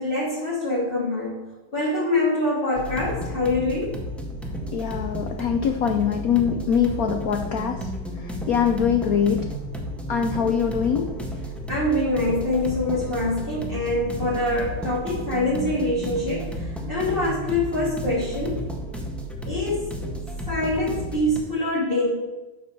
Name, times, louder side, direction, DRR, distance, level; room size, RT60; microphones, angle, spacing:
voice 1, 0.0-1.4 1.7-3.9 10.4-10.6 11.7-16.6 16.9-18.6 19.5-20.0 20.5-22.1, left 1 dB, 25° left, -10 dB, 3.0 m, -25 dB
sound 1, 2.7-21.4, equal, ahead, 1.0 m, -32 dB
voice 2, 4.7-7.9 8.2-9.5 10.1-11.2, left 8 dB, 85° left, 6 dB, 0.7 m, -23 dB
10.0 x 6.2 x 6.8 m, 1.1 s
omnidirectional pair, 2.4 m